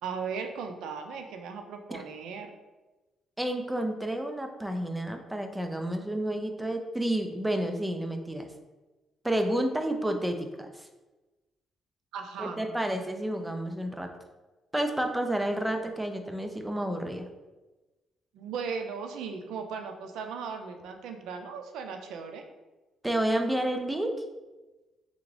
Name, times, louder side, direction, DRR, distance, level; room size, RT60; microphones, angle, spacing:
voice 1, 0.0-2.5 12.1-12.6 18.3-22.4, right 5 dB, 85° right, 6 dB, 0.5 m, -37 dB
voice 2, 3.4-8.5 9.2-10.9 12.4-14.1 14.7-17.3 23.0-24.1, right 1 dB, 10° right, 5 dB, 0.5 m, -30 dB
3.7 x 3.4 x 3.3 m, 1.2 s
cardioid pair, 90°, 0 cm